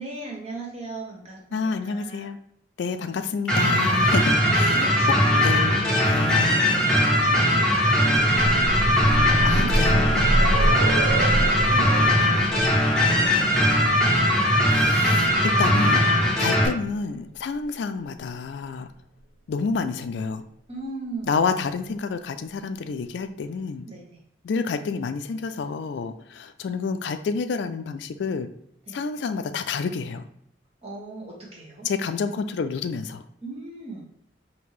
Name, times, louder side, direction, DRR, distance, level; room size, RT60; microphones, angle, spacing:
voice 1, 0.0-2.3 4.4-5.5 6.4-10.0 10.8-13.9 20.7-21.4 23.8-24.0 28.9-29.0 30.8-31.9 33.4-34.0, right 2 dB, 30° right, -2 dB, 1.1 m, -39 dB
voice 2, 1.5-2.4 2.8-4.8 5.3-6.6 9.4-10.8 14.7-16.1 16.4-18.9 19.5-20.4 21.3-23.9 24.4-28.5 28.9-30.2 31.8-33.2, left 5 dB, 70° left, 10 dB, 0.3 m, -29 dB
sound 1, 3.5-16.7, equal, 5° left, 1.0 m, -20 dB
sound 2, 7.9-15.7 16.8-16.9 17.3-17.4, right 1 dB, 60° right, 0.3 m, -27 dB
5.2 x 2.8 x 3.2 m, 0.73 s
head